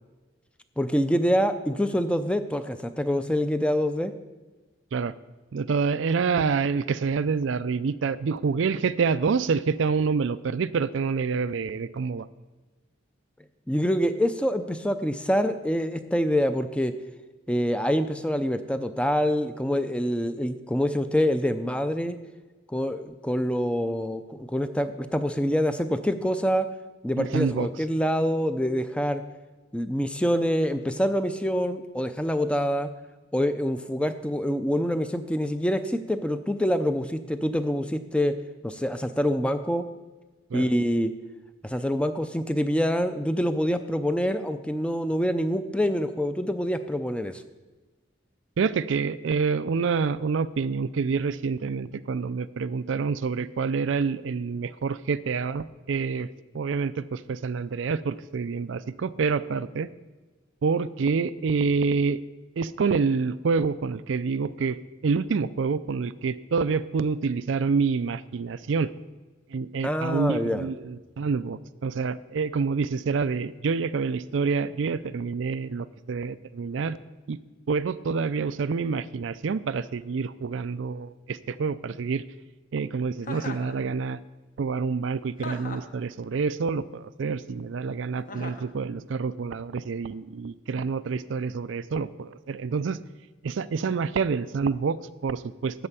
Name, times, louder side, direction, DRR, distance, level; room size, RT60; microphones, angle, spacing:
voice 1, 0.8-4.1 13.7-16.9 17.5-22.2 22.7-26.7 27.0-29.2 29.7-32.9 33.3-38.4 38.6-39.9 40.5-41.1 41.6-47.4 69.8-70.7, equal, 5° left, 9 dB, 0.5 m, -26 dB
voice 2, 5.5-12.3 27.2-27.7 40.5-40.7 48.6-56.3 56.5-59.9 60.6-62.2 62.6-64.8 65.0-68.9 69.5-77.0 77.3-77.4 77.7-82.2 82.7-84.2 84.6-93.0 93.4-95.9, right 5 dB, 70° right, 15 dB, 0.4 m, -27 dB
Chuckle chortle, 83.2-83.7 85.4-86.0 88.3-88.7, left 2 dB, 45° left, 1.0 m, -38 dB
13.0 x 4.4 x 8.2 m, 1.2 s
head